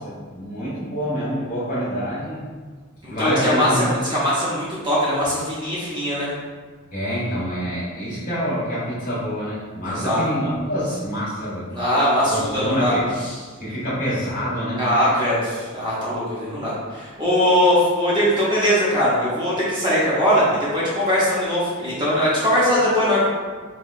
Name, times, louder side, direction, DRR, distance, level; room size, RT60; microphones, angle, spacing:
voice 1, 0.0-2.4 3.0-3.9 6.9-11.7 12.2-13.0 13.6-14.8, equal, 40° left, -9 dB, 1.3 m, -26 dB
voice 2, 3.0-6.3 9.9-10.2 11.7-13.0 13.2-13.4 14.8-23.3, equal, 20° right, -8 dB, 0.7 m, -21 dB
4.6 x 2.3 x 2.4 m, 1.5 s
head